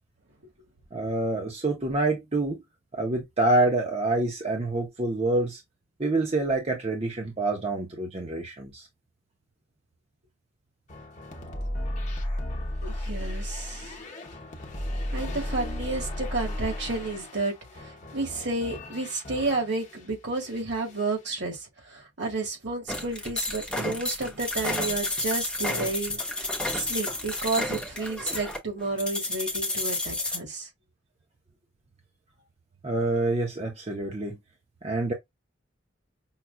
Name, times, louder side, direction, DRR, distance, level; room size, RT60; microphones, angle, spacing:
voice 1, 0.9-2.6 2.9-5.6 6.0-8.9 32.8-34.4 34.8-35.1, right 2 dB, 35° right, 0.7 m, -27 dB
sound 1, 10.9-20.0 20.4-21.2, left 1 dB, 40° left, 0.9 m, -35 dB
voice 2, 12.8-14.0 15.1-30.7, right 3 dB, 65° right, 1.6 m, -31 dB
sound 2, 22.9-30.4, left 2 dB, 5° left, 0.8 m, -31 dB
5.6 x 2.4 x 2.2 m
head